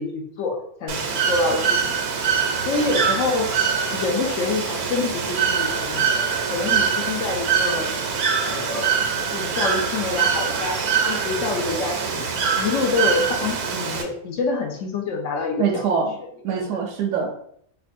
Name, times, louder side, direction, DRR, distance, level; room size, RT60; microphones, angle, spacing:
voice 1, 0.0-1.9 2.6-3.6 3.9-8.1 8.4-9.0 9.2-12.3 12.6-15.9 16.6-16.8, left 3 dB, 70° left, 2 dB, 0.9 m, -27 dB
Bird / Water, 0.9-14.0, right 6 dB, 90° right, 1.1 m, -24 dB
voice 2, 15.6-16.1 16.4-17.3, right 6 dB, 70° right, 3 dB, 0.8 m, -23 dB
4.5 x 2.4 x 2.6 m, 0.67 s
omnidirectional pair, 1.5 m